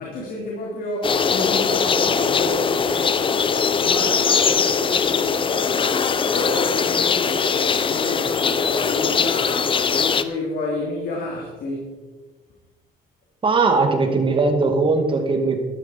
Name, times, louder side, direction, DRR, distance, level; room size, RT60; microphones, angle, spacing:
voice 1, 0.0-12.1, left 2 dB, 60° left, -2 dB, 3.1 m, -30 dB
sound 1, 1.0-10.2, left 6 dB, 30° left, 0.7 m, -21 dB
voice 2, 13.4-15.6, right 3 dB, 30° right, 4 dB, 2.4 m, -19 dB
13.0 x 11.5 x 4.5 m, 1.3 s
cardioid pair, 110°, 17 cm